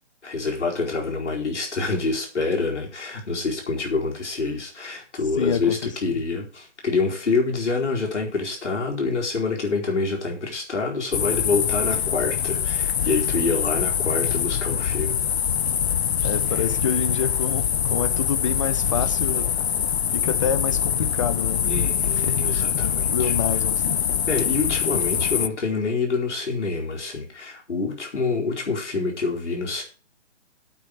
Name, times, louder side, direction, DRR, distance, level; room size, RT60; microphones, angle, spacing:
voice 1, 0.2-15.3 21.6-23.3 24.3-29.8, left 4 dB, 85° left, 4.6 m, -26 dB
voice 2, 5.4-5.8 16.2-19.5 20.1-21.7 22.3-24.0, left 7 dB, 30° left, 0.9 m, -28 dB
sound 1, 11.1-25.5, left 8 dB, 65° left, 0.6 m, -24 dB
8.8 x 8.4 x 6.5 m
hypercardioid pair, 165°, 34 cm